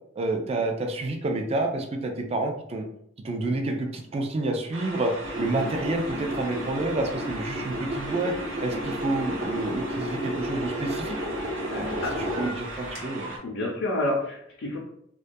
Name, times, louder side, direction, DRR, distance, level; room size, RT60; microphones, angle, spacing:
voice 1, 0.2-2.9 3.2-8.3 8.6-11.2 11.7-12.0 12.4-13.3, right 2 dB, 30° right, 3 dB, 0.3 m, -29 dB
sound 1, 4.7-13.4, right 1 dB, 85° right, 0.5 m, -38 dB
sound 2, 5.2-13.0, equal, 55° right, 0.8 m, -33 dB
voice 2, 11.6-12.1 13.4-14.8, left 1 dB, 90° left, -4 dB, 0.5 m, -29 dB
2.2 x 2.2 x 2.6 m, 0.72 s
head